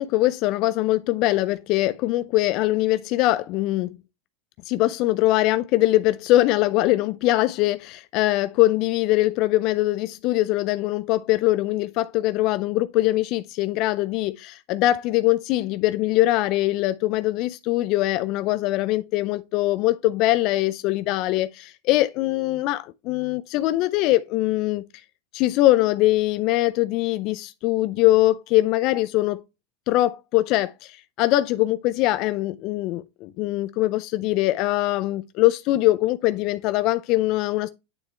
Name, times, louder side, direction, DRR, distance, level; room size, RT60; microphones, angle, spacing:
voice 1, 0.0-3.9 4.7-24.8 25.3-29.4 29.9-37.7, left 17 dB, 45° left, 0.3 m, -22 dB
8.9 x 4.2 x 3.3 m
supercardioid pair, 145°, 0 cm